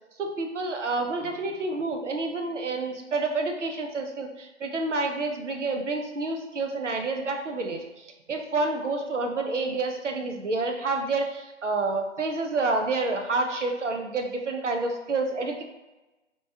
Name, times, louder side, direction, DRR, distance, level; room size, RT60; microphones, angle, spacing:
voice 1, 0.2-15.6, right 3 dB, 75° right, 4 dB, 0.8 m, -29 dB
3.1 x 2.9 x 3.3 m, 1.1 s
figure-of-eight pair, 150°, 36 cm